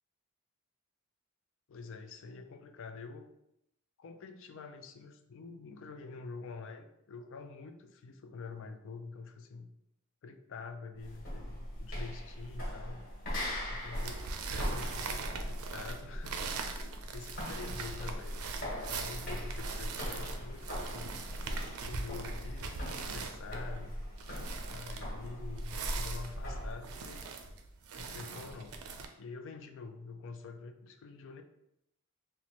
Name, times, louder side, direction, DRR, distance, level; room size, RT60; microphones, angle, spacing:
voice 1, 1.7-3.3 4.0-9.7 10.2-13.0 13.7-14.2 14.5-16.5 17.0-18.5 18.9-21.2 21.8-23.9 24.7-27.3 28.0-28.8 29.2-31.4, left 4 dB, 60° left, 7 dB, 0.4 m, -46 dB
sound 1, 11.0-26.8, equal, 40° left, 1.3 m, -40 dB
sound 2, 13.9-29.1, right 4 dB, 85° right, 0.4 m, -41 dB
3.0 x 2.1 x 4.1 m, 0.81 s
head